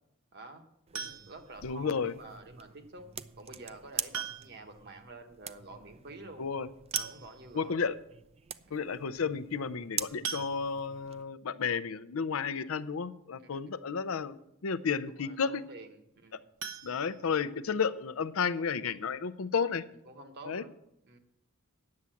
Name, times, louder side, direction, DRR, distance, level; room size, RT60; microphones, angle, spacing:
voice 1, 0.3-0.6 0.9-3.1 3.4-6.4 6.9-7.8 8.6-8.8 13.5-13.6 15.2-16.4 20.0-20.8 21.0-21.2, right 2 dB, 50° right, 5 dB, 1.3 m, -49 dB
sound 1, 0.9-11.2, right 8 dB, 30° right, 0.4 m, -44 dB
sound 2, 0.9-1.6 3.1-3.2 4.1-4.7 5.0-5.1 5.4-5.5 6.5-6.6 6.9-7.6 8.2-8.3 8.6-8.8 10.2-11.1 16.6-17.8 18.1-18.2 18.7-18.8 19.1-19.2, right 6 dB, 70° right, 0.7 m, -40 dB
voice 2, 1.6-2.1 6.4-6.7 7.5-7.9 8.7-14.4 14.6-15.6 16.8-19.8 20.5-20.6, left 6 dB, 75° left, 15 dB, 0.6 m, -32 dB
9.6 x 7.1 x 7.7 m, 0.81 s
head